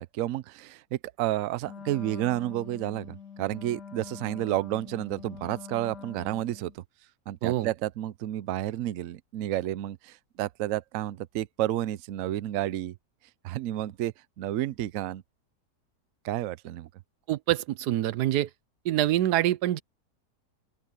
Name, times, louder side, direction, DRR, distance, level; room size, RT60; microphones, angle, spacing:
voice 1, 0.0-6.8 7.3-12.9 13.4-15.2 16.2-16.9, right 13 dB, 65° right, 0.9 m, -31 dB
Wind instrument woodwind instrument, 1.6-6.8, left 6 dB, 90° left, 2.3 m, -45 dB
voice 2, 17.3-18.5 18.8-19.8, right 13 dB, 85° right, 1.2 m, -25 dB
open air
omnidirectional pair, 1.7 m